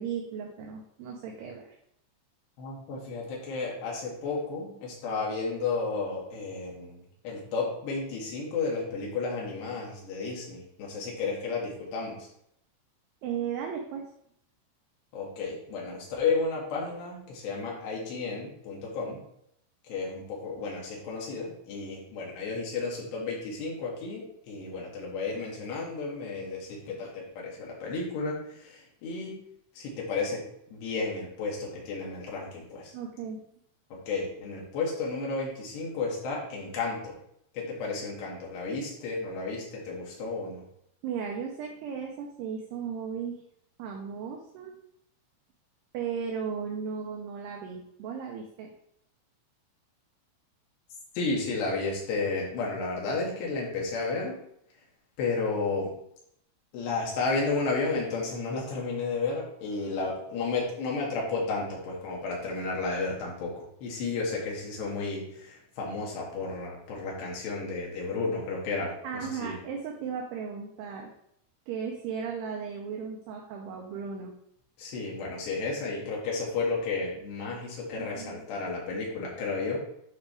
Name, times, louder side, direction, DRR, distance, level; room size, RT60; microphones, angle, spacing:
voice 1, 0.0-1.8 13.2-14.1 32.9-33.4 41.0-43.4 43.8-44.8 45.9-48.7 69.0-71.1 71.7-74.3 78.0-78.4, right 6 dB, 75° right, 0 dB, 2.5 m, -36 dB
voice 2, 2.6-12.3 15.1-19.2 19.9-29.3 29.8-30.4 30.7-32.9 34.1-37.2 37.5-40.6 51.2-54.3 55.2-55.9 56.7-69.6 74.8-79.8, left 4 dB, 65° left, -3 dB, 3.9 m, -32 dB
9.9 x 5.0 x 3.4 m, 0.73 s
omnidirectional pair, 5.7 m